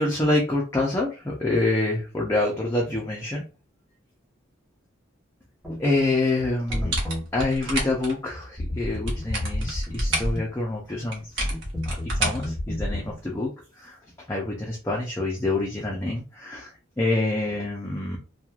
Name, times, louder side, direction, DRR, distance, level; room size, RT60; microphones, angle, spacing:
voice 1, 0.0-3.4 5.7-7.0 7.3-11.4 11.9-14.0 14.3-18.2, left 2 dB, 15° left, -3 dB, 0.5 m, -26 dB
sound 1, 5.6-5.8 6.7-7.2 8.6-10.4 11.4-13.0, left 1 dB, 5° right, 1.1 m, -29 dB
sound 2, 6.7-8.1 8.9-10.4 11.1-13.1, right 2 dB, 65° right, 1.0 m, -31 dB
3.0 x 2.3 x 2.3 m, 0.33 s
head